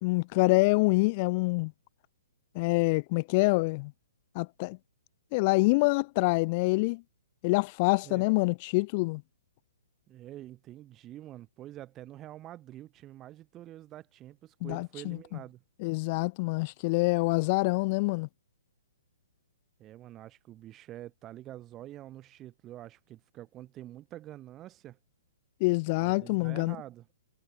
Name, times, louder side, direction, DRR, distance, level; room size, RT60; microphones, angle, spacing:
voice 1, 0.0-1.7 2.5-3.9 4.3-4.8 5.3-7.0 7.4-9.2 14.6-15.2 15.8-18.3 25.6-26.8, left 26 dB, 35° left, 0.6 m, -26 dB
voice 2, 10.1-15.6 19.8-25.0 26.0-27.1, right 13 dB, 25° right, 7.3 m, -46 dB
hypercardioid pair, 140°, 0 cm